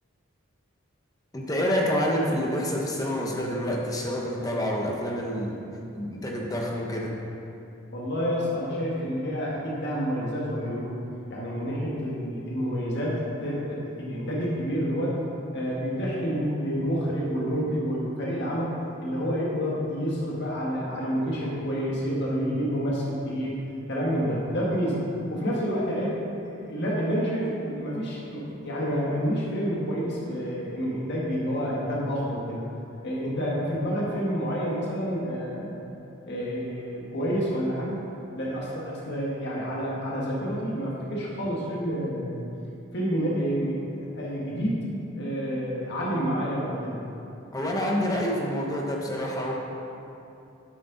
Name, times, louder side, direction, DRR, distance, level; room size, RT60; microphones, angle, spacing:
voice 1, 1.3-5.6 5.9-7.2 47.5-49.5, equal, 15° left, -2 dB, 1.1 m, -27 dB
voice 2, 7.9-11.0 11.3-15.2 15.5-23.6 23.9-25.0 25.3-26.2 26.5-32.7 33.0-35.9 36.3-38.0 38.3-42.4 42.9-44.9 45.1-47.0, equal, 55° left, -5 dB, 1.7 m, -29 dB
10.5 x 7.6 x 4.0 m, 2.8 s
head